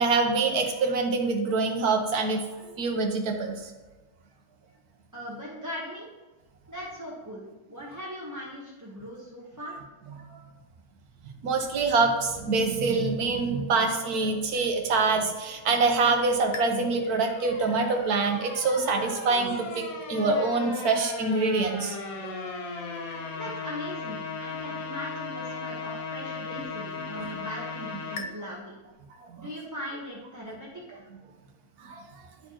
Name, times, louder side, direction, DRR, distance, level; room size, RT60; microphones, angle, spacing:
voice 1, 0.0-2.4 2.8-3.6 10.3-10.4 11.4-22.0 22.2-22.3 27.1-27.3 28.2-28.3 29.4-29.5 31.8-32.0, right 3 dB, 90° right, 3 dB, 1.5 m, -25 dB
voice 2, 5.1-6.1 6.7-9.8 23.3-28.8 29.4-31.0, equal, 15° right, -5 dB, 1.0 m, -39 dB
sound 1, 16.5-28.3, left 4 dB, 75° left, 1.2 m, -37 dB
11.5 x 4.4 x 2.9 m, 1.2 s
omnidirectional pair, 1.5 m